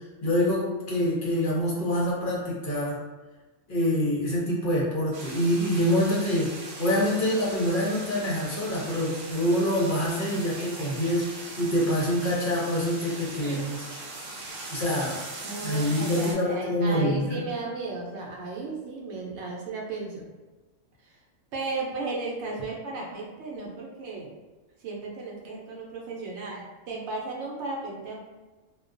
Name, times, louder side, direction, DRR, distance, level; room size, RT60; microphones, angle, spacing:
voice 1, 0.2-3.0 3.7-13.8 14.7-15.2 15.6-17.5, equal, 50° left, -5 dB, 0.6 m, -26 dB
sound 1, 5.1-16.3, right 2 dB, 85° right, 1.0 m, -40 dB
voice 2, 15.4-20.3 21.5-24.3 24.8-28.1, right 3 dB, 65° right, -2 dB, 0.9 m, -35 dB
2.3 x 2.1 x 2.5 m, 1.2 s
omnidirectional pair, 1.4 m